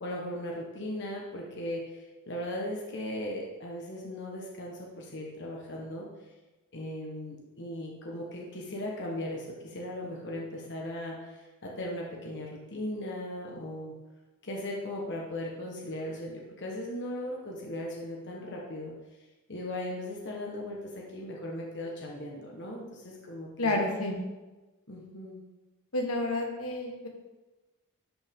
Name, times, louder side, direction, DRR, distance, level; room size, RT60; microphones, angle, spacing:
voice 1, 0.0-6.1 6.7-14.0 14.4-18.9 19.5-23.8 24.9-25.4, left 1 dB, 50° left, -2 dB, 1.3 m, -38 dB
voice 2, 23.6-24.1 25.9-27.1, left 2 dB, 70° left, 1 dB, 1.4 m, -30 dB
11.5 x 5.3 x 3.7 m, 1.1 s
head